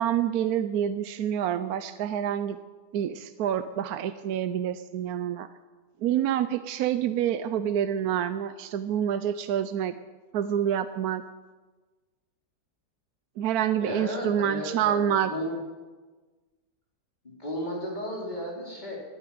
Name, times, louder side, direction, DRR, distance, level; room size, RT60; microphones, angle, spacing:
voice 1, 0.0-2.6 2.9-5.5 6.0-9.9 10.3-11.2 13.4-15.3, right 10 dB, 70° right, 11 dB, 1.0 m, -27 dB
voice 2, 13.8-15.5 17.2-19.0, equal, 25° left, -4 dB, 4.3 m, -34 dB
12.0 x 9.6 x 9.3 m, 1.3 s
omnidirectional pair, 1.8 m